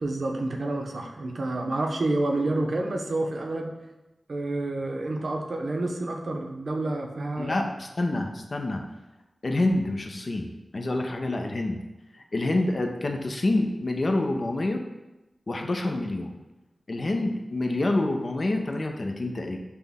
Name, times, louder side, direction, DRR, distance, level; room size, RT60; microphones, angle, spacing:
voice 1, 0.0-3.7 4.3-7.6, right 2 dB, 70° right, 2 dB, 0.6 m, -29 dB
voice 2, 7.4-8.8 9.4-11.8 12.3-14.8 15.5-16.3 16.9-19.6, left 2 dB, 55° left, 4 dB, 0.5 m, -27 dB
5.9 x 2.1 x 3.5 m, 1.0 s
cardioid pair, 55°, 0 cm